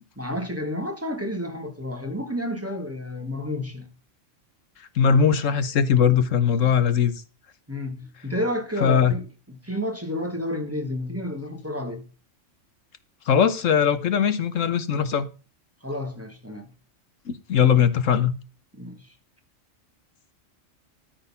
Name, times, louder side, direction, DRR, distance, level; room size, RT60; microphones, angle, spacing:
voice 1, 0.2-3.9 7.7-12.0 15.8-16.7 18.7-19.1, left 1 dB, 10° right, 2.0 m, -31 dB
voice 2, 4.9-7.1 8.8-9.1 13.3-15.3 17.3-18.3, left 7 dB, 80° left, 1.4 m, -20 dB
13.5 x 6.7 x 5.7 m
omnidirectional pair, 1.3 m